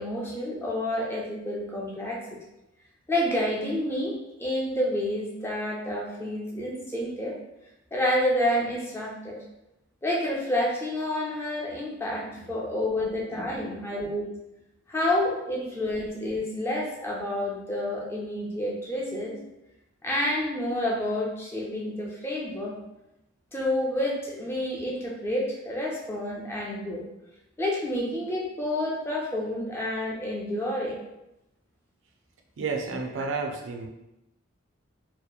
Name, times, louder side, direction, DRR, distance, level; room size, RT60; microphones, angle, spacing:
voice 1, 0.0-2.4 3.1-7.4 7.9-9.4 10.0-14.3 14.9-19.4 20.0-22.8 23.5-27.0 27.6-31.0, left 1 dB, 10° left, -3 dB, 0.4 m, -29 dB
voice 2, 13.3-13.9 32.6-33.9, right 4 dB, 65° right, 3 dB, 0.4 m, -33 dB
2.7 x 2.1 x 2.3 m, 0.91 s
head